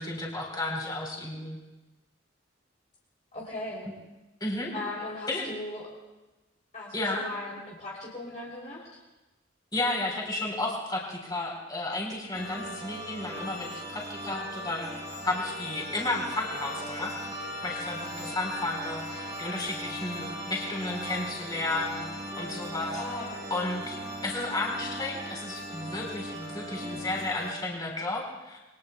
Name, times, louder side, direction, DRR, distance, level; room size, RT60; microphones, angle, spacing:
voice 1, 0.0-1.6 4.4-4.7 5.3-5.5 6.9-7.2 9.7-14.9 15.2-17.2 17.6-23.0 23.5-28.6, left 2 dB, 20° left, -2 dB, 4.0 m, -33 dB
voice 2, 3.3-3.9 4.7-5.9 6.7-9.0 22.9-23.5, left 2 dB, 40° left, -5 dB, 3.2 m, -38 dB
sound 1, 12.3-27.5, equal, 20° right, 2.5 m, -38 dB
27.5 x 23.0 x 2.3 m, 1.1 s
head